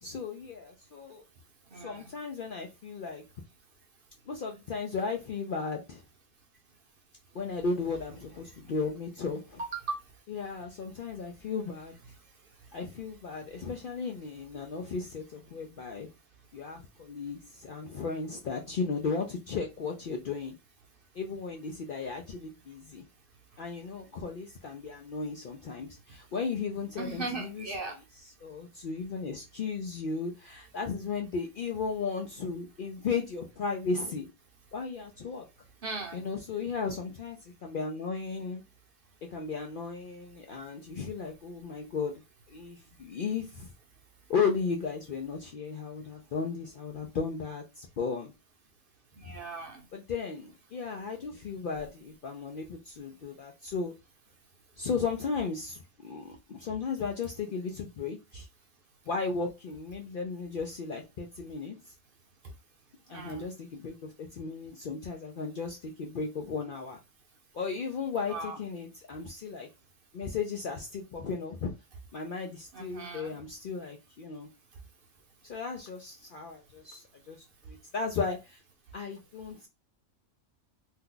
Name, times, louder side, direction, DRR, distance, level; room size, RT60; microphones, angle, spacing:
voice 1, 0.0-1.2 1.8-3.2 4.3-6.0 7.3-9.6 10.3-11.9 12.7-16.1 16.5-20.5 21.1-23.1 23.6-27.7 28.4-34.3 34.7-35.4 36.1-38.6 39.3-42.2 42.5-43.7 44.3-48.3 49.2-49.3 49.9-53.9 54.8-58.5 59.1-61.8 63.1-67.0 67.5-69.7 70.1-71.7 72.1-74.5 75.4-78.6 78.9-79.7, left 5 dB, 60° left, 0.5 m, -35 dB
voice 2, 1.7-2.1 9.6-10.0 27.0-28.0 35.8-36.3 49.2-49.8 63.1-63.5 68.3-68.6 72.7-73.4, right 3 dB, 50° right, 0.8 m, -38 dB
2.8 x 2.2 x 3.7 m
omnidirectional pair, 1.3 m